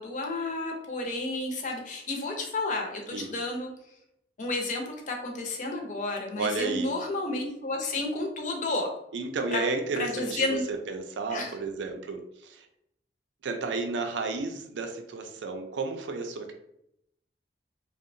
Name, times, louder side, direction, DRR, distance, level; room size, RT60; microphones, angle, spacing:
voice 1, 0.0-3.7 4.4-8.9 9.5-9.6 10.0-10.6 11.3-11.5, left 2 dB, 45° left, 2 dB, 0.5 m, -31 dB
voice 2, 6.4-6.9 9.1-12.7 13.4-16.5, right 3 dB, 85° right, 5 dB, 0.4 m, -32 dB
2.7 x 2.0 x 2.5 m, 0.78 s
head